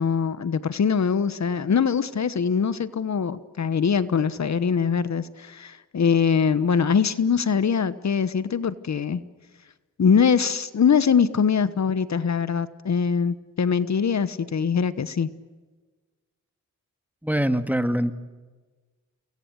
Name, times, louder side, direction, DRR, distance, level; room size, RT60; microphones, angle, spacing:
voice 1, 0.0-9.2 10.0-15.3, left 6 dB, 55° left, 15 dB, 1.1 m, -22 dB
voice 2, 17.2-18.1, equal, 5° right, 10 dB, 1.8 m, -23 dB
28.5 x 22.0 x 8.2 m, 1.3 s
cardioid pair, 55°, 32 cm